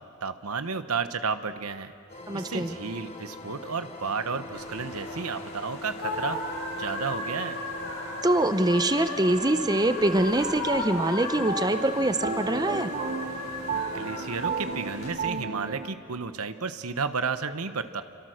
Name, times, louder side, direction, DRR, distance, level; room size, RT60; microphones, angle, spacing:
voice 1, 0.2-1.9 2.3-6.4 6.8-7.6 13.9-18.0, right 5 dB, 80° right, 10 dB, 1.1 m, -32 dB
sound 1, 2.1-15.0, left 1 dB, 30° left, 3.0 m, -43 dB
voice 2, 2.3-2.7 8.2-12.9, right 1 dB, 15° right, 9 dB, 0.8 m, -24 dB
sound 2, 4.5-15.1, left 2 dB, 80° left, 6.5 m, -36 dB
sound 3, 10.9-15.9, right 4 dB, 35° right, 1.2 m, -33 dB
30.0 x 25.0 x 6.5 m, 2.3 s
head